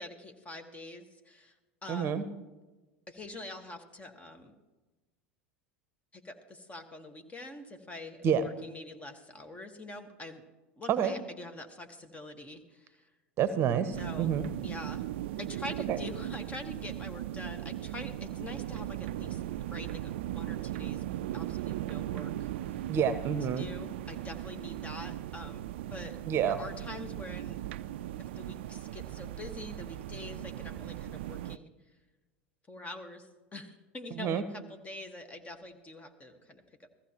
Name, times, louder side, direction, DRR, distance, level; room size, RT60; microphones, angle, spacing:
voice 1, 0.0-1.5 1.8-2.1 3.1-4.5 6.1-10.4 10.8-13.1 13.9-14.3 14.6-15.1 15.4-21.0 21.3-22.8 23.5-25.6 25.9-26.2 26.5-27.6 28.2-31.7 32.7-36.9, left 2 dB, 20° left, 6 dB, 1.5 m, -45 dB
voice 2, 1.9-2.2 8.2-8.4 10.9-11.1 13.4-14.5 15.9-16.0 22.9-23.7 26.3-26.6 34.2-34.4, right 8 dB, 40° right, 13 dB, 0.9 m, -28 dB
sound 1, 13.9-31.6, right 13 dB, 70° right, 0.4 m, -38 dB
15.5 x 14.5 x 3.0 m, 1.2 s
hypercardioid pair, 85°, 6 cm